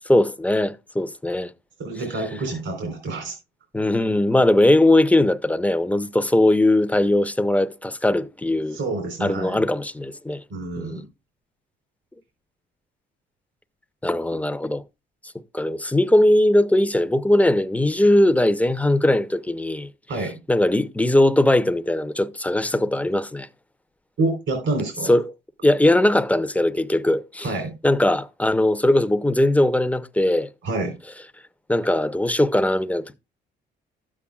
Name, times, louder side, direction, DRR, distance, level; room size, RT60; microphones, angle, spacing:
voice 1, 0.1-1.5 3.7-8.8 9.2-10.4 10.8-11.0 14.0-14.8 15.5-19.9 20.5-23.5 25.1-25.3 25.6-27.5 27.8-30.5 31.7-33.1, left 1 dB, 5° left, 0.7 m, -20 dB
voice 2, 1.8-3.4 8.7-9.6 10.5-11.1 20.1-20.4 24.2-25.1 27.4-27.7 30.6-30.9, right 2 dB, 75° right, 3.8 m, -27 dB
12.5 x 8.6 x 2.3 m
cardioid pair, 90°, 20 cm